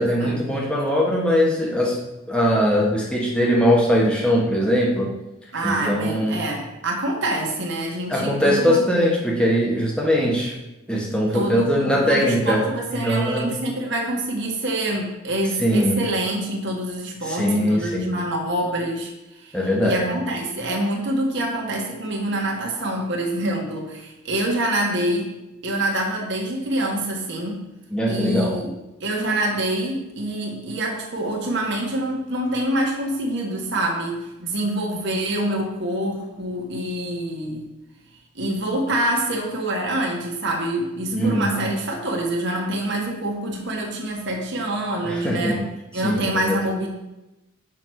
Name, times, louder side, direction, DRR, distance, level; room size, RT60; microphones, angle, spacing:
voice 1, 0.0-2.0 2.3-5.1 5.6-6.3 8.1-10.5 10.9-12.6 12.9-13.6 15.6-16.0 17.2-18.1 19.5-20.1 27.9-28.6 41.1-41.6 45.0-45.6 46.0-46.6, equal, 5° left, -3 dB, 1.4 m, -21 dB
voice 2, 5.5-8.9 11.3-19.1 19.4-25.3 25.6-27.6 28.1-28.7 29.0-37.7 38.3-45.6 45.9-46.9, right 1 dB, 55° right, 0 dB, 1.5 m, -26 dB
6.1 x 5.8 x 4.7 m, 0.97 s
head